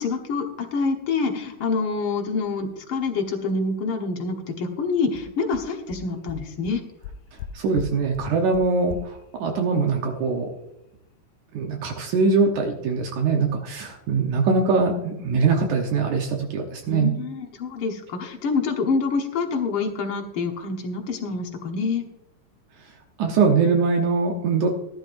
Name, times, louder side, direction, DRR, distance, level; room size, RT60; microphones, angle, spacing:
voice 1, 0.0-6.8 16.9-22.1, left 4 dB, 55° left, 3 dB, 1.7 m, -26 dB
sound 1, 4.8-4.9 5.2-5.3 5.5-5.6 5.9-6.0 6.3-6.4 6.7-6.8 7.0-7.5 7.8-7.9 8.1-8.2 8.5-8.6 8.9-9.0, left 11 dB, 85° left, 2.3 m, -36 dB
voice 2, 7.5-10.5 11.5-17.1 23.2-24.8, right 4 dB, 70° right, 2 dB, 2.4 m, -22 dB
15.0 x 11.5 x 2.6 m, 0.86 s
omnidirectional pair, 3.7 m